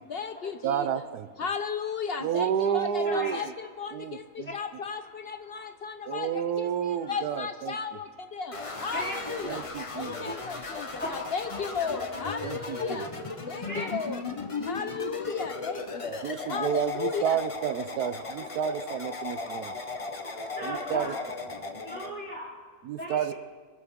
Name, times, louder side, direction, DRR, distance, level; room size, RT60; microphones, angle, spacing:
voice 1, 0.1-0.9 1.4-6.3 6.6-6.7 7.1-9.6 9.9-13.1 13.5-14.2 14.6-16.1 16.5-17.4, left 5 dB, 60° left, 9 dB, 0.6 m, -34 dB
voice 2, 0.6-1.3 2.2-3.5 3.9-4.5 6.1-7.8 9.4-10.3 12.4-13.1 16.2-19.7 20.6-21.2 22.8-23.3, right 8 dB, 90° right, 11 dB, 1.2 m, -30 dB
voice 3, 3.0-3.4 4.4-4.5 5.5-5.6 6.3-6.4 7.0-7.1 8.9-9.2 9.6-11.3 12.8-12.9 13.4-13.9 14.5-14.7 19.5-21.1 21.6-22.6 23.0-23.2, equal, 5° left, -4 dB, 3.6 m, -39 dB
sound 1, 8.5-22.1, left 3 dB, 25° left, 0.8 m, -37 dB
22.5 x 13.0 x 3.6 m, 1.5 s
omnidirectional pair, 1.6 m